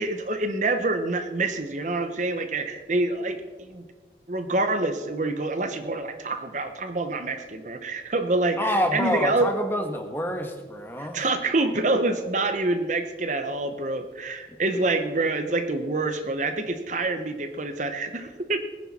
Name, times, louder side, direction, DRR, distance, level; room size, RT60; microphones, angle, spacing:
voice 1, 0.0-3.8 4.3-9.5 11.0-18.6, right 2 dB, 40° right, 8 dB, 0.9 m, -26 dB
voice 2, 8.6-11.2, left 1 dB, 10° left, 4 dB, 1.4 m, -27 dB
19.5 x 10.5 x 4.2 m, 1.4 s
head